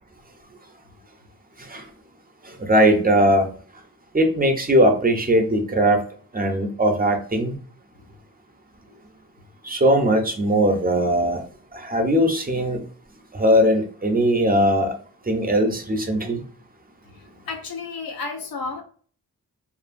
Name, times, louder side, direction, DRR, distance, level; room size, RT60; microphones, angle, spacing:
voice 1, 2.7-3.5 4.1-6.0 6.3-7.5 9.7-11.4 11.9-12.8 13.3-14.9 15.3-16.4, equal, 25° right, 0.6 m, -19 dB
voice 2, 17.0-18.8, left 4 dB, 80° left, 0.8 m, -33 dB
2.6 x 2.6 x 2.5 m
cardioid pair, 70°, 35 cm